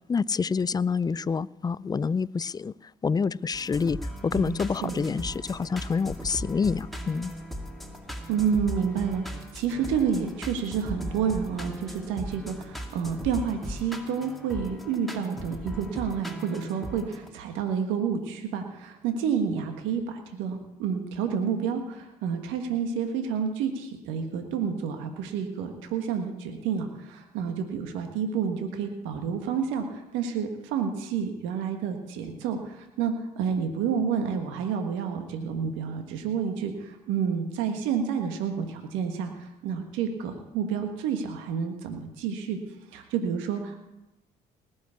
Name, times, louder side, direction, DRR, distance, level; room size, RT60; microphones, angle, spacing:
voice 1, 0.1-2.7 3.0-7.3, left 5 dB, 20° left, 21 dB, 0.4 m, -27 dB
sound 1, 3.5-17.3, equal, ahead, 2.2 m, -38 dB
voice 2, 4.3-5.1 8.3-42.6 42.9-43.8, right 7 dB, 75° right, 5 dB, 1.5 m, -29 dB
19.0 x 6.4 x 8.3 m, 0.97 s
hypercardioid pair, 60°, 20 cm